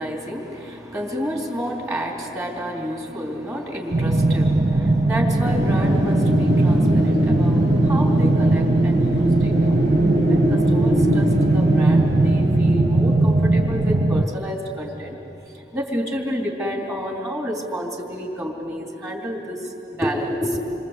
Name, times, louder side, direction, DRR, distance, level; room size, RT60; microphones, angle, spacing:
voice 1, 0.0-9.7 10.3-11.3 11.5-15.2 15.4-20.6, equal, 20° right, -1 dB, 3.3 m, -30 dB
sound 1, 3.9-14.3, right 2 dB, 40° right, 1.1 m, -19 dB
Wind, 5.4-14.2, left 1 dB, 65° right, 3.6 m, -25 dB
28.0 x 25.0 x 8.2 m, 2.8 s
head